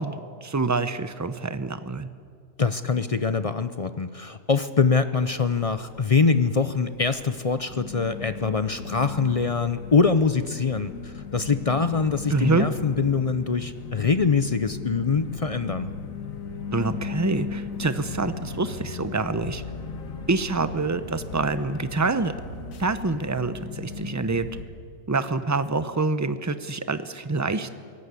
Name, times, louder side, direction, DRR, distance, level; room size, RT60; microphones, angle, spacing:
voice 1, 0.0-2.1 12.3-12.7 16.7-19.6 20.3-22.3 22.8-24.5 25.1-27.7, right 3 dB, 15° right, 12 dB, 0.7 m, -26 dB
voice 2, 2.6-15.9, left 5 dB, 40° left, 11 dB, 0.5 m, -24 dB
sound 1, 5.2-24.6, left 5 dB, 70° left, 1.8 m, -37 dB
24.0 x 18.0 x 8.4 m, 2.2 s
omnidirectional pair, 1.5 m